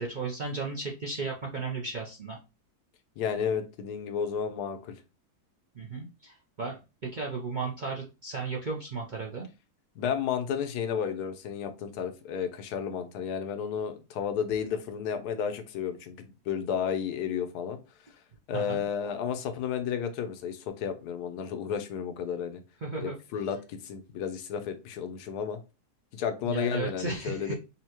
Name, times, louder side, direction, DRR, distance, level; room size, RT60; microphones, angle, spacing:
voice 1, 0.0-2.4 5.7-9.5 18.5-18.8 22.8-23.1 26.4-27.5, right 4 dB, 50° right, -2 dB, 0.6 m, -35 dB
voice 2, 3.2-4.9 10.0-17.8 18.5-22.6 23.0-25.6 26.1-27.6, left 7 dB, 80° left, 7 dB, 1.2 m, -32 dB
5.5 x 2.4 x 2.9 m, 0.29 s
omnidirectional pair, 1.7 m